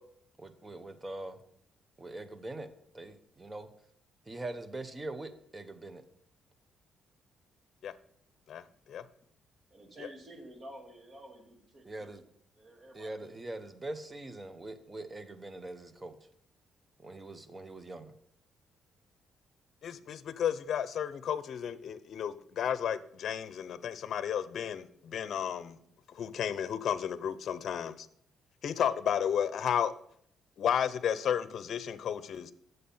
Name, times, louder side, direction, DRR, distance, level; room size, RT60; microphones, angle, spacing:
voice 1, 0.4-1.4 2.0-2.7 2.9-3.7 4.3-6.0 11.8-12.2 12.9-16.2 17.0-18.1, right 2 dB, 20° right, 11 dB, 1.0 m, -42 dB
voice 2, 8.5-9.0 19.8-25.8 26.1-28.1 28.6-29.9 30.6-32.5, left 8 dB, 60° left, 14 dB, 0.6 m, -33 dB
voice 3, 9.7-12.2 12.6-13.4, right 1 dB, 40° right, 3 dB, 2.3 m, -51 dB
8.4 x 6.8 x 5.5 m, 0.67 s
cardioid pair, 90°, 0 cm